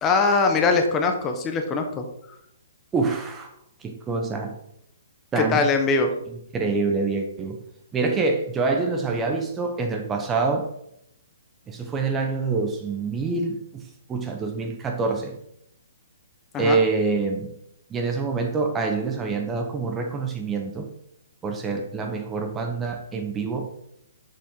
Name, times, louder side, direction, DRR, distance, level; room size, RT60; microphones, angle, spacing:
voice 1, 0.0-2.1 5.4-6.1 16.5-16.8, left 4 dB, 20° left, 4 dB, 0.7 m, -22 dB
voice 2, 2.9-3.5 3.8-4.5 5.3-5.7 6.5-7.6 7.9-10.7 11.7-13.8 14.1-15.3 16.6-17.5 17.9-20.9 21.4-23.7, right 4 dB, 15° right, 3 dB, 0.7 m, -26 dB
6.5 x 4.1 x 3.5 m, 0.74 s
figure-of-eight pair, 125°, 0 cm